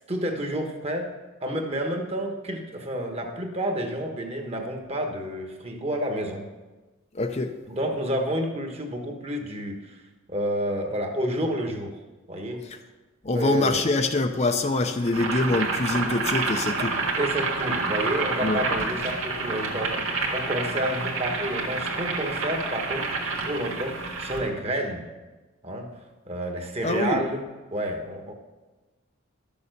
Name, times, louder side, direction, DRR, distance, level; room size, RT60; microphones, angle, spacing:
voice 1, 0.1-1.1 1.4-6.4 7.7-10.0 10.3-12.0 12.3-12.6 13.3-13.9 16.7-16.9 17.1-23.1 23.4-25.1 25.6-25.9 26.3-28.3, right 1 dB, 30° right, 3 dB, 1.3 m, -30 dB
voice 2, 7.1-7.5 13.2-16.9 18.4-18.6 26.8-27.2, left 2 dB, 30° left, 6 dB, 0.6 m, -24 dB
Boiling, 15.1-24.5, right 3 dB, 75° right, 1.7 m, -28 dB
12.0 x 7.0 x 6.6 m, 1.2 s
head